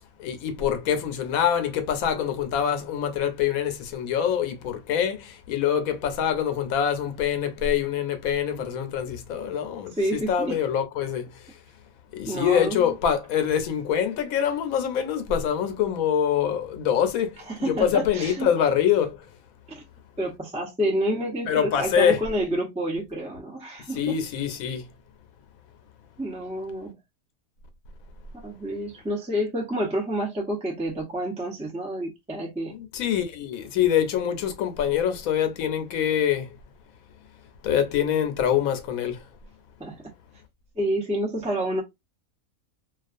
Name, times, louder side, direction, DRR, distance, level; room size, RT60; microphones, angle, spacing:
voice 1, 0.2-10.0 10.3-11.5 12.1-19.3 21.5-22.2 24.0-24.9 32.7-36.6 37.6-39.2, left 9 dB, 80° left, 1.0 m, -25 dB
voice 2, 10.0-10.6 12.3-12.9 17.5-18.7 19.7-19.8 20.2-24.1 26.2-27.0 28.4-32.7 39.8-40.1 40.8-41.8, right 1 dB, 10° right, 0.5 m, -29 dB
2.4 x 2.3 x 2.4 m
omnidirectional pair, 1.5 m